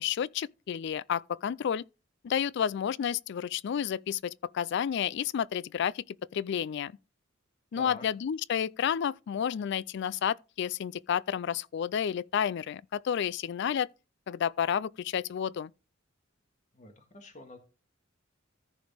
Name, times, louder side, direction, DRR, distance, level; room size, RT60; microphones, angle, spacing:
voice 1, 0.0-1.8 2.2-6.9 7.7-13.9 14.3-15.7, left 8 dB, 60° left, 0.3 m, -31 dB
voice 2, 7.7-8.0 16.7-17.6, left 2 dB, 40° left, 1.7 m, -46 dB
14.5 x 4.9 x 3.4 m
head